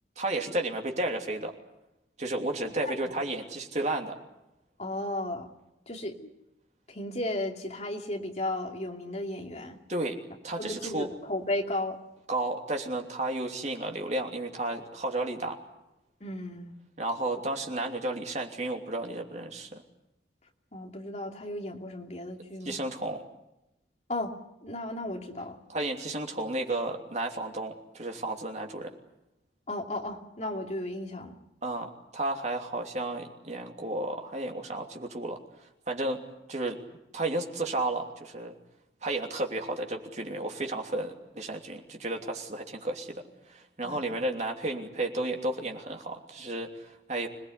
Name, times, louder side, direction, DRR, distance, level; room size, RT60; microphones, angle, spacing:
voice 1, 0.2-1.5 2.2-4.2 9.9-10.2 10.4-11.1 12.3-15.6 17.0-19.8 22.6-23.2 25.7-28.9 31.6-35.4 35.9-36.2 36.5-36.8 37.1-38.5 39.0-43.2 43.5-47.3, right 2 dB, 40° right, 3 dB, 3.0 m, -32 dB
voice 2, 4.8-5.5 5.9-6.3 6.9-9.8 10.6-12.0 16.2-16.7 20.7-22.8 24.1-24.3 24.6-25.6 29.7-31.4 43.8-44.2, left 1 dB, 40° left, 2 dB, 2.7 m, -34 dB
26.0 x 19.0 x 9.6 m, 0.92 s
head